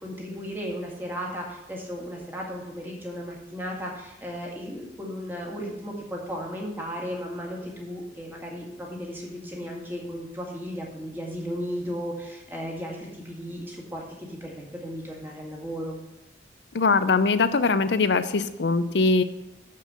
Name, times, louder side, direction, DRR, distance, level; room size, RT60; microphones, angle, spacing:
voice 1, 0.0-16.0, equal, 10° right, -2 dB, 1.8 m, -35 dB
voice 2, 16.7-19.2, left 4 dB, 75° left, 12 dB, 0.6 m, -22 dB
7.0 x 6.5 x 6.4 m, 0.96 s
head